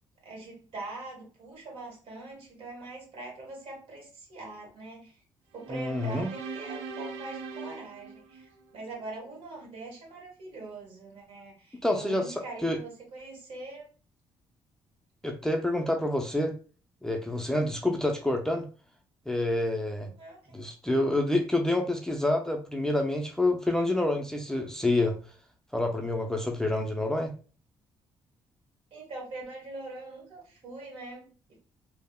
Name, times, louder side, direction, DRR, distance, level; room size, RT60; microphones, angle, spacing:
voice 1, 0.2-5.2 5.5-13.9 20.2-20.6 28.9-31.6, right 2 dB, 65° right, -2 dB, 1.4 m, -43 dB
sound 1, 5.6-8.9, right 4 dB, 85° right, 0.5 m, -41 dB
voice 2, 5.7-6.3 11.8-12.3 12.6-12.8 15.2-16.5 17.0-18.7 19.3-20.1 20.5-25.2 25.7-27.3, left 1 dB, 5° left, 3 dB, 0.4 m, -27 dB
3.4 x 2.0 x 2.2 m, 0.37 s
cardioid pair, 75°, 10 cm